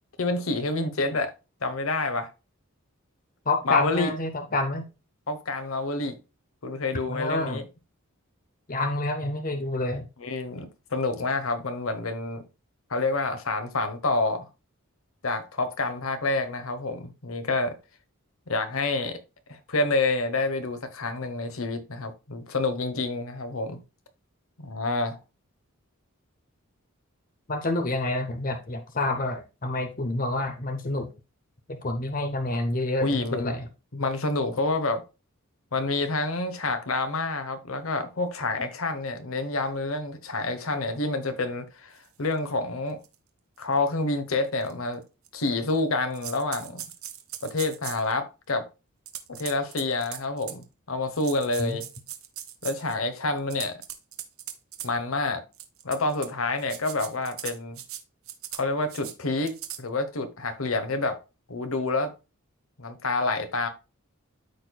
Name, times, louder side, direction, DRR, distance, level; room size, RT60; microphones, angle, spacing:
voice 1, 0.2-1.3 1.6-2.3 3.6-4.1 5.3-6.2 6.6-7.7 10.2-12.4 12.9-14.5 15.2-17.8 18.5-19.2 19.5-23.8 24.6-25.2 33.0-33.5 33.9-35.0 35.7-43.0 43.6-45.0 45.3-46.8 47.4-48.7 49.3-51.8 52.6-53.7 54.8-55.4 55.8-57.8 58.5-61.2 61.5-62.1 62.8-63.7, left 3 dB, 75° left, 1.1 m, -28 dB
voice 2, 3.5-4.8 7.1-7.6 8.7-10.0 27.5-31.1 31.7-33.6 51.6-51.8, left 2 dB, 40° left, 0.8 m, -28 dB
sound 1, 42.3-42.4 43.0-43.2 43.6-43.7 44.6-44.7 45.3-45.8 46.1-48.1 49.1-50.6 51.2-53.0 53.4-54.9 55.5-56.3 56.6-58.0 58.3-58.6 58.9-59.1 59.4-59.8, right 12 dB, 80° right, 1.0 m, -39 dB
13.0 x 4.4 x 2.3 m
head